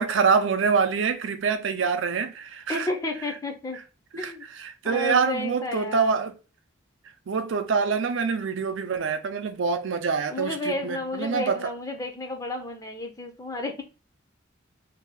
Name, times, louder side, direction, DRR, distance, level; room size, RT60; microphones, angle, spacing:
voice 1, 0.0-2.9 4.1-4.3 4.6-6.3 7.3-11.7, right 5 dB, 75° right, 0.4 m, -25 dB
voice 2, 2.7-3.8 4.2-4.5 4.8-6.2 10.3-13.8, left 2 dB, 15° left, 0.5 m, -32 dB
2.7 x 2.3 x 3.2 m
head